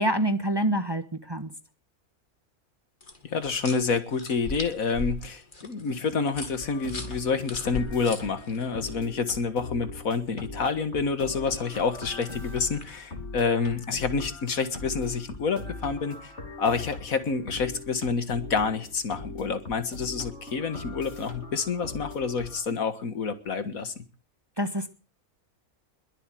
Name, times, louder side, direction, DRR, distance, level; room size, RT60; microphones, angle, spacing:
voice 1, 0.0-1.5 24.6-24.9, right 1 dB, 20° right, 9 dB, 1.3 m, -26 dB
sound 1, 3.0-9.0 11.5-13.0, left 2 dB, 35° left, 2.2 m, -39 dB
voice 2, 3.2-16.3 16.6-23.9, left 5 dB, 70° left, 11 dB, 2.0 m, -28 dB
sound 2, 6.6-22.6, left 3 dB, 50° left, 3.0 m, -41 dB
21.5 x 8.0 x 7.6 m, 0.37 s
omnidirectional pair, 1.5 m